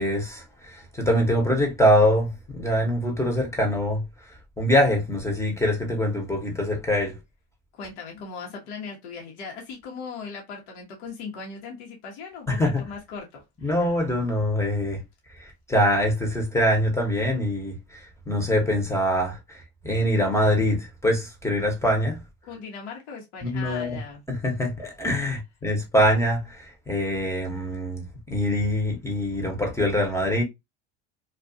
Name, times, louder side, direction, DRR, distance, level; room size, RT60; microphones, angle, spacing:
voice 1, 0.0-4.0 4.6-7.2 12.5-12.8 13.6-15.0 15.4-22.2 23.4-24.0 24.3-30.4, equal, 10° left, 0.8 m, -24 dB
voice 2, 7.7-13.9 22.4-24.2, left 5 dB, 80° left, 1.0 m, -39 dB
2.4 x 2.3 x 2.5 m
supercardioid pair, 105°, 34 cm